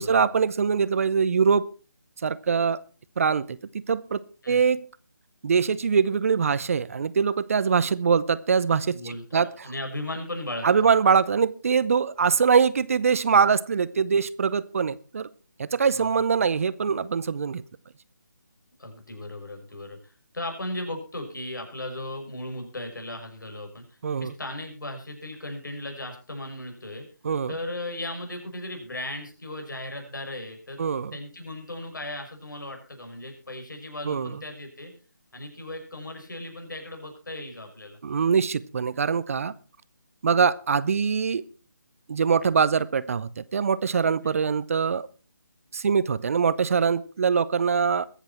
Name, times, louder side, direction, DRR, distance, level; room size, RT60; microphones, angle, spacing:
voice 1, 0.0-1.7 2.2-2.8 3.2-4.8 5.4-9.5 10.6-15.3 15.6-17.6 24.0-24.3 27.2-27.5 30.8-31.2 34.0-34.4 38.0-39.5 40.2-41.4 42.1-45.1 45.7-48.1, right 6 dB, 45° right, 17 dB, 0.7 m, -23 dB
voice 2, 8.9-10.7 16.0-16.2 18.8-27.1 27.5-30.8 31.1-34.9 35.3-38.0 44.2-44.4, left 1 dB, 75° left, 4 dB, 6.2 m, -36 dB
21.5 x 8.1 x 4.4 m, 0.36 s
figure-of-eight pair, 155°, 11 cm